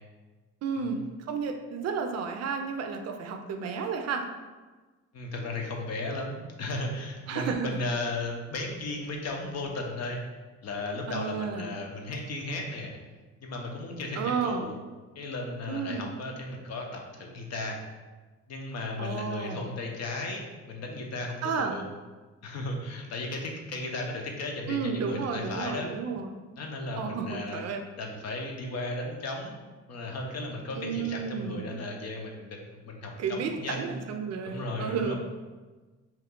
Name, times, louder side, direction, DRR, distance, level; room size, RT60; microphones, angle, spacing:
voice 1, 0.6-4.3 7.3-7.7 11.1-11.7 14.2-14.7 15.7-16.1 19.0-19.7 21.4-21.8 24.7-26.4 27.0-27.8 30.8-31.6 33.2-35.2, right 5 dB, 55° right, 5 dB, 0.4 m, -32 dB
voice 2, 5.1-10.2 10.6-13.0 13.4-14.7 15.1-17.8 18.5-21.8 22.4-25.9 26.6-27.6 28.0-29.6 29.9-32.6 32.8-33.9 34.4-35.2, left 2 dB, 60° left, 1 dB, 0.7 m, -35 dB
2.9 x 2.3 x 3.6 m, 1.3 s
cardioid pair, 90°, 30 cm